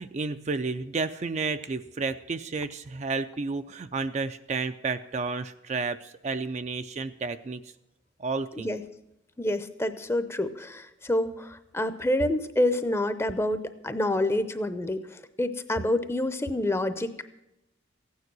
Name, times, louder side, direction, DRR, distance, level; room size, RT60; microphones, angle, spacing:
voice 1, 0.0-7.7 8.2-8.8, right 4 dB, 35° right, 9 dB, 0.4 m, -31 dB
voice 2, 9.4-17.1, left 1 dB, 10° left, 11 dB, 0.6 m, -27 dB
15.5 x 9.5 x 6.1 m, 0.89 s
head